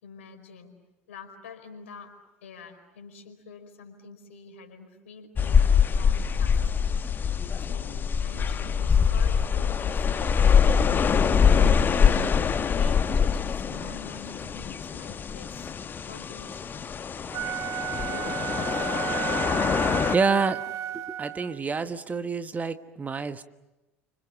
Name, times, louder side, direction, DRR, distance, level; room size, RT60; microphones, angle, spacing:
voice 1, 0.0-0.7 1.1-2.1 2.4-6.7 7.0-7.2 7.5-15.7 16.1-16.8 18.1-18.9, left 5 dB, 70° left, 6 dB, 4.7 m, -46 dB
sound 1, 5.4-20.2, left 6 dB, 30° left, 1.1 m, -24 dB
Wind instrument woodwind instrument, 17.2-21.6, right 11 dB, 50° right, 1.0 m, -33 dB
voice 2, 19.0-19.8 20.0-20.6 20.9-23.4, right 4 dB, 20° right, 10 dB, 1.3 m, -28 dB
30.0 x 26.0 x 7.1 m, 1.0 s
figure-of-eight pair, 70°, 7 cm